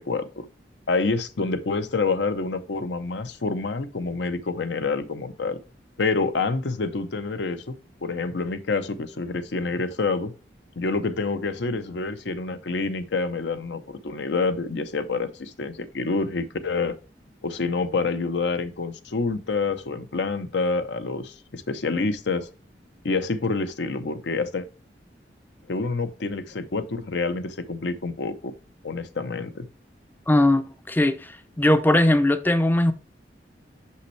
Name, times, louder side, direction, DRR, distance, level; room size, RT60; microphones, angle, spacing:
voice 1, 0.1-0.5 0.9-5.6 6.0-7.7 8.0-10.3 10.8-17.0 17.4-22.5 23.0-24.7 25.7-28.5 28.8-29.7, left 3 dB, 80° left, 0.7 m, -27 dB
voice 2, 30.3-32.9, left 1 dB, 10° left, 0.4 m, -20 dB
6.2 x 5.6 x 3.1 m
head